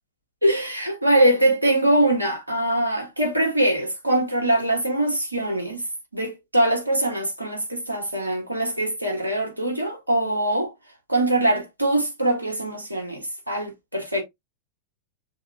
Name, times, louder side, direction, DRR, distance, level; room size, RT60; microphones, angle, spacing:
voice 1, 0.4-5.8 6.1-10.7 11.1-14.2, right 1 dB, 85° right, 1.5 m, -23 dB
6.4 x 3.5 x 2.2 m
figure-of-eight pair, 90°, 0 cm